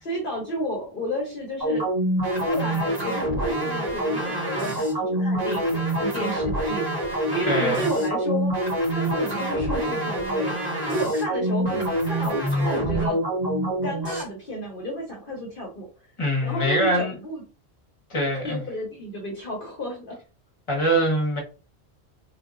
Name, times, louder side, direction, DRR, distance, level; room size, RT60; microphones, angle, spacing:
voice 1, 0.0-1.9 2.4-6.8 7.1-8.5 8.9-10.6 10.9-13.2 13.8-15.9 16.4-17.4 18.4-20.2, equal, 55° left, 1.1 m, -31 dB
sound 1, 1.6-14.2, right 1 dB, 40° right, 1.6 m, -26 dB
voice 2, 7.4-7.9 16.2-17.1 18.1-18.6 20.7-21.4, equal, 30° left, 1.3 m, -23 dB
3.8 x 2.8 x 2.5 m
omnidirectional pair, 1.1 m